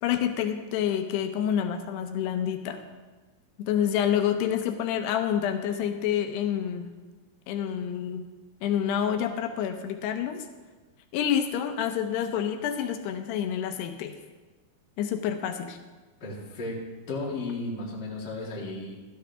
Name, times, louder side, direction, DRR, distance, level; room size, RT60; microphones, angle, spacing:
voice 1, 0.0-2.8 3.6-6.9 7.5-8.3 8.6-10.5 11.1-14.1 15.0-15.8, left 9 dB, 85° left, 7 dB, 2.9 m, -28 dB
voice 2, 16.2-16.8 17.1-19.0, left 2 dB, 30° left, -3 dB, 2.3 m, -34 dB
15.5 x 12.5 x 3.5 m, 1.3 s
omnidirectional pair, 4.6 m